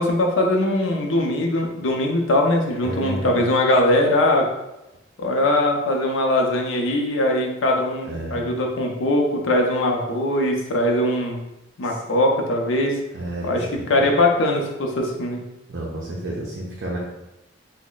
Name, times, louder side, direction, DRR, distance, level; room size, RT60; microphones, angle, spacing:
voice 1, 0.0-4.4 5.2-11.4 11.8-13.0 13.4-15.4, left 1 dB, 80° left, 1 dB, 0.5 m, -21 dB
voice 2, 2.8-3.4 8.0-8.5 11.8-12.0 13.1-14.1 15.7-17.0, right 1 dB, 60° right, -4 dB, 0.5 m, -31 dB
3.0 x 2.1 x 3.8 m, 0.92 s
head